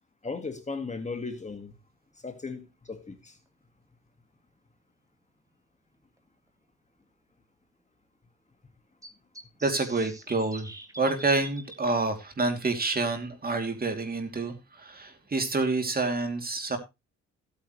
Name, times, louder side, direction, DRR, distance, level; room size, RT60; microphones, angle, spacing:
voice 1, 0.2-1.7 2.2-3.4, left 4 dB, 25° left, 1.8 m, -36 dB
sound 1, 3.5-3.6 5.5-5.6 6.2-6.3 6.5-6.6 9.0-11.8, right 1 dB, 10° right, 2.0 m, -46 dB
voice 2, 9.6-10.7 11.0-16.8, right 3 dB, 30° right, 2.8 m, -28 dB
15.5 x 8.7 x 3.2 m
cardioid pair, 90°, 30 cm